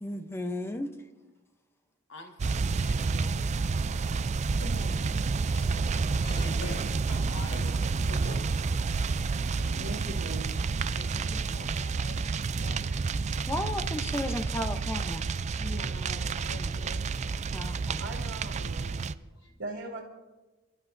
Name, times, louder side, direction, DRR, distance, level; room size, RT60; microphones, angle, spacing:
voice 1, 0.0-0.9 5.5-5.6 13.5-15.2 16.6-16.7 17.5-18.0, left 1 dB, 10° left, 7 dB, 0.7 m, -34 dB
voice 2, 2.1-3.3 6.4-7.7 10.9-11.9, left 3 dB, 60° left, 2 dB, 1.7 m, -46 dB
sound 1, 2.4-19.1, right 4 dB, 35° right, 0.4 m, -30 dB
voice 3, 4.3-6.9 7.5-8.4 9.6-10.2 11.0-12.1 12.6-13.2 15.6-17.0 17.7-17.9 18.8-19.0 19.4-19.6, left 1 dB, 85° left, 1 dB, 3.6 m, -45 dB
voice 4, 9.7-10.5 12.8-12.9 18.0-18.9 19.6-20.0, right 2 dB, 65° right, 0 dB, 2.2 m, -39 dB
30.0 x 12.5 x 2.7 m, 1.2 s
head